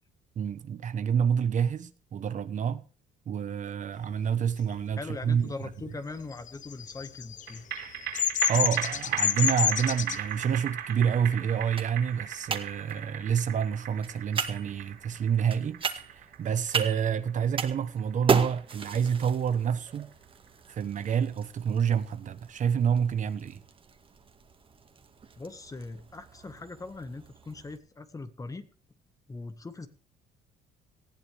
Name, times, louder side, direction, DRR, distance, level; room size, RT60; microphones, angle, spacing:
voice 1, 0.4-2.8 3.3-5.5 8.5-20.1 20.7-23.6, right 7 dB, 45° right, 1.1 m, -28 dB
voice 2, 5.0-7.6 25.4-28.7 29.3-29.9, left 3 dB, 20° left, 1.7 m, -40 dB
Bird vocalization bird call bird song, 6.5-10.2, left 10 dB, 50° left, 0.7 m, -28 dB
sound 1, 7.5-20.1 20.5-20.6, right 9 dB, 80° right, 4.5 m, -38 dB
sound 2, 9.9-27.8, right 5 dB, 30° right, 2.0 m, -37 dB
19.0 x 15.0 x 3.5 m
cardioid pair, 110°, 17 cm